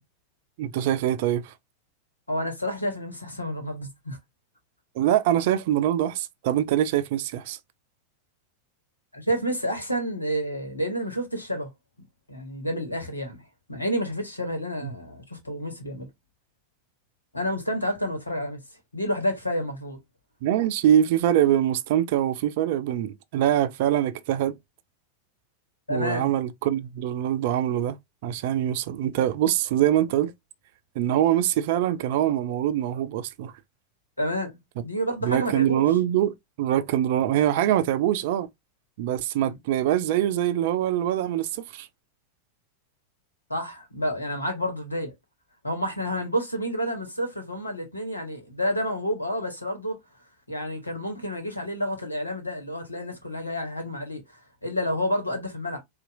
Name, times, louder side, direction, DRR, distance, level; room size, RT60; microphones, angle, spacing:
voice 1, 0.6-1.5 5.0-7.6 14.8-14.9 20.4-24.6 25.9-28.0 28.2-30.3 31.0-33.5 35.2-38.5 39.0-41.9, right 11 dB, 50° right, 0.4 m, -24 dB
voice 2, 2.3-4.2 9.1-11.7 12.3-13.4 13.7-16.1 17.3-18.6 18.9-20.0 25.9-26.4 34.2-35.9 39.4-39.6 43.5-45.1 45.6-50.0 50.5-55.8, equal, 85° left, 1.2 m, -29 dB
4.1 x 2.5 x 2.5 m
figure-of-eight pair, 90°, 0 cm